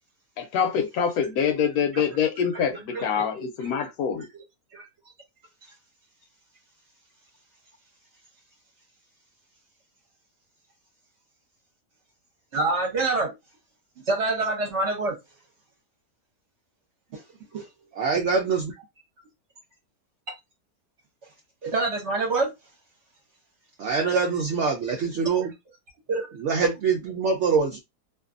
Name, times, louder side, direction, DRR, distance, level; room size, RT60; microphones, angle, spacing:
voice 1, 0.4-4.3, left 7 dB, 70° left, 1.0 m, -25 dB
voice 2, 2.9-3.2 4.7-4.9 12.5-13.3 14.1-15.2 17.1-17.2 17.5-17.7 21.6-22.5 26.1-26.3, right 3 dB, 50° right, 0.9 m, -26 dB
voice 3, 18.0-18.7 23.8-25.5 26.4-27.8, right 5 dB, 75° right, 0.6 m, -24 dB
2.5 x 2.5 x 2.4 m
omnidirectional pair, 1.7 m